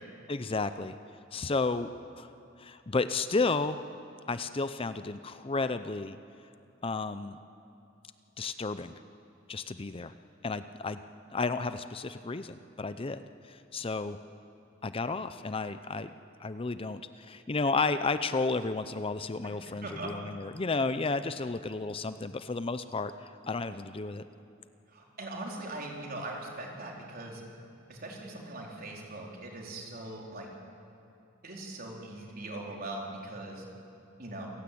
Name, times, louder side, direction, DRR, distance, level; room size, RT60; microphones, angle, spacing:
voice 1, 0.3-0.9 1.3-1.9 2.1-2.3 2.6-3.8 4.3-6.2 6.8-7.4 8.4-8.9 9.5-10.1 10.4-11.0 11.3-14.2 14.8-16.1 16.4-24.3, left 3 dB, 30° left, 11 dB, 0.6 m, -32 dB
voice 2, 24.9-27.4 27.9-30.5 31.4-33.6 34.2-34.5, right 2 dB, 50° right, -1 dB, 4.1 m, -40 dB
28.0 x 16.0 x 8.6 m, 2.7 s
head